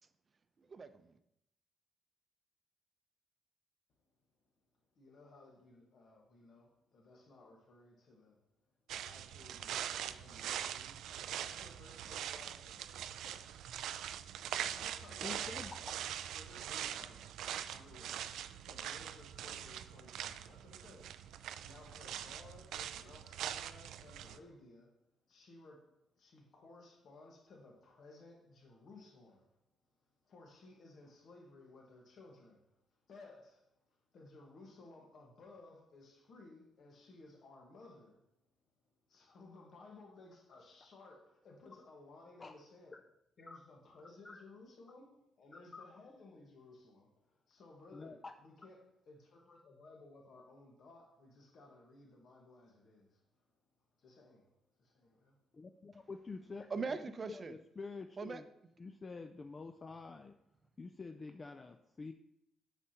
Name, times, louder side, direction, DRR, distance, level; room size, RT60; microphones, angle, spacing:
voice 1, 0.6-1.2 56.7-57.6 58.2-58.7, right 4 dB, 35° right, 0.6 m, -42 dB
voice 2, 4.9-13.9 14.2-29.6 30.2-38.3 39.0-43.0 43.4-53.5 53.9-55.4, left 2 dB, 60° left, 1.4 m, -59 dB
sound 1, 8.9-24.4, right 10 dB, 80° right, 0.3 m, -43 dB
voice 3, 15.2-15.7 42.4-42.5 44.2-44.4 45.7-45.8 47.9-48.3 55.5-56.7 57.3-58.5 58.8-60.3 60.8-62.1, left 4 dB, 35° left, 0.4 m, -47 dB
8.1 x 5.6 x 2.9 m
cardioid pair, 90°, 0 cm